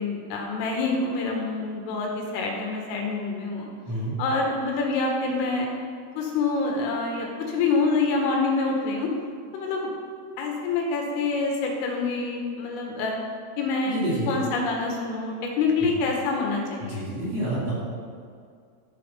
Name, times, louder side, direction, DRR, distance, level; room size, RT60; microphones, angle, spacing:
voice 1, 0.0-3.7 4.2-5.7 6.2-9.1 9.5-9.9 10.4-13.2 13.6-14.0 14.3-17.0, left 3 dB, 85° left, 0 dB, 4.2 m, -26 dB
voice 2, 13.9-14.3 15.8-15.9 16.8-17.7, right 1 dB, 35° right, -8 dB, 3.2 m, -28 dB
13.0 x 7.8 x 5.6 m, 2.2 s
omnidirectional pair, 5.7 m